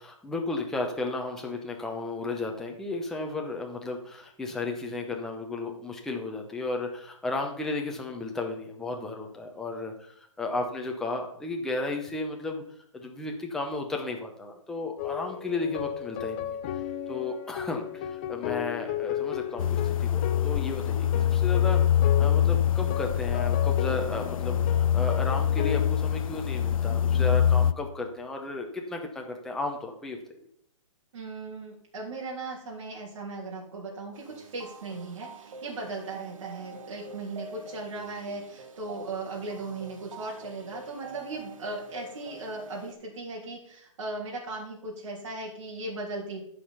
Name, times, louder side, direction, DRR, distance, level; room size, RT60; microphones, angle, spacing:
voice 1, 0.0-12.6 12.9-16.6 17.1-30.4, left 2 dB, 5° left, 1 dB, 0.7 m, -34 dB
sound 1, 15.0-26.2, left 10 dB, 20° left, 0.4 m, -35 dB
sound 2, 19.6-27.7, left 9 dB, 85° left, 0.5 m, -24 dB
voice 2, 31.1-46.4, right 2 dB, 60° right, -3 dB, 3.1 m, -37 dB
sound 3, 34.1-42.9, right 4 dB, 80° right, 1.4 m, -46 dB
12.0 x 5.0 x 5.6 m, 0.64 s
hypercardioid pair, 165°, 17 cm